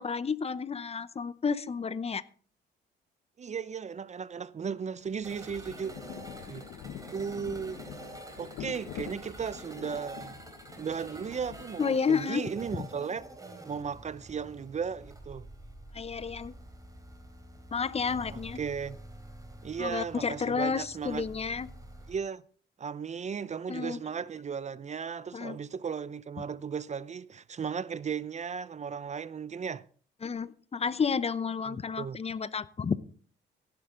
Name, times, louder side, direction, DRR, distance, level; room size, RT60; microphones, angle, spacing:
voice 1, 0.0-2.2 11.8-12.4 15.9-16.5 17.7-18.6 19.8-21.7 23.7-24.0 25.3-25.6 30.2-33.0, left 5 dB, 30° left, 0.7 m, -31 dB
voice 2, 3.4-6.0 6.5-6.7 7.1-7.8 8.4-10.3 10.8-13.2 13.7-15.5 18.3-19.0 19.6-21.2 22.1-22.4 22.8-29.8 31.7-32.2, right 6 dB, 35° right, 0.6 m, -36 dB
Rain, 5.0-12.2, left 10 dB, 80° left, 0.9 m, -46 dB
sound 1, 5.2-22.1, right 1 dB, 15° right, 3.4 m, -47 dB
16.5 x 10.5 x 3.8 m
cardioid pair, 90°, 20 cm